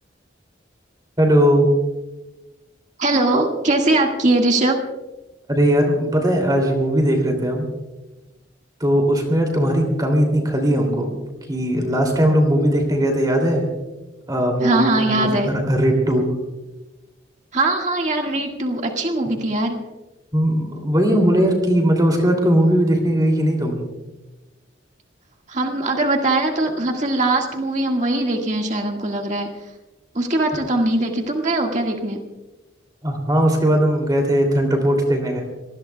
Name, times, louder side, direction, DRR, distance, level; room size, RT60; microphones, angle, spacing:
voice 1, 1.2-1.7 5.5-7.7 8.8-11.1 11.5-13.7 14.3-16.2 20.3-23.8 33.0-35.4, equal, 20° right, 2 dB, 2.8 m, -19 dB
voice 2, 3.0-4.8 14.6-15.5 17.5-19.8 25.5-29.5 30.1-32.2, right 2 dB, 40° right, 2 dB, 1.8 m, -21 dB
27.5 x 19.5 x 2.3 m, 1.1 s
head